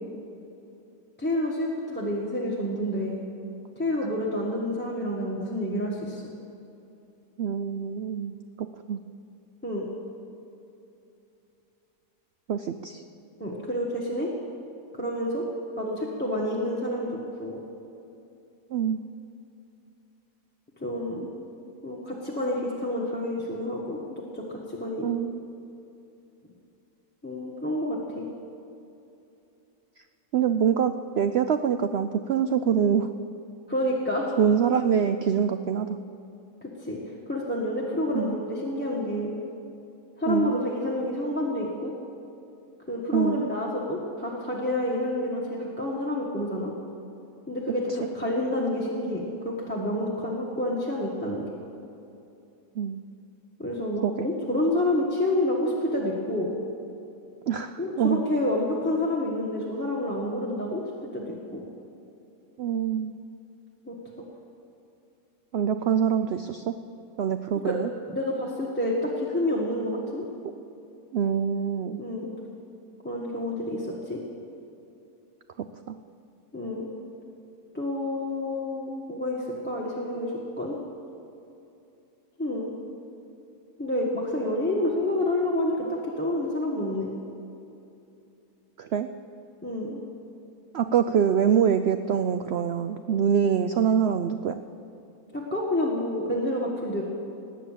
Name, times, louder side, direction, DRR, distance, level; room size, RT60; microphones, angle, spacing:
voice 1, 1.2-3.2 3.8-6.2 9.6-9.9 13.4-14.3 14.9-15.4 15.8-17.6 20.8-21.3 21.8-25.1 27.2-28.2 33.7-34.3 36.6-39.3 40.2-41.9 42.9-46.7 47.5-51.5 53.6-56.5 57.8-61.7 63.9-64.0 67.5-67.8 68.1-70.2 72.0-72.3 73.0-74.2 76.5-76.9 77.7-80.8 82.4-82.7 83.8-87.1 89.6-90.0 95.3-97.0, left 1 dB, 5° left, -4 dB, 1.3 m, -29 dB
voice 2, 7.4-9.0 12.5-13.0 18.7-19.0 25.0-25.4 30.3-33.1 34.4-35.9 38.1-38.4 40.2-40.6 43.1-43.5 52.8-53.0 54.0-54.3 57.5-57.7 58.0-58.2 62.6-63.2 65.5-66.7 67.2-67.9 71.1-72.0 88.8-89.1 90.7-94.6, right 8 dB, 90° right, 9 dB, 0.5 m, -25 dB
19.5 x 8.5 x 7.4 m, 2.7 s
omnidirectional pair, 1.7 m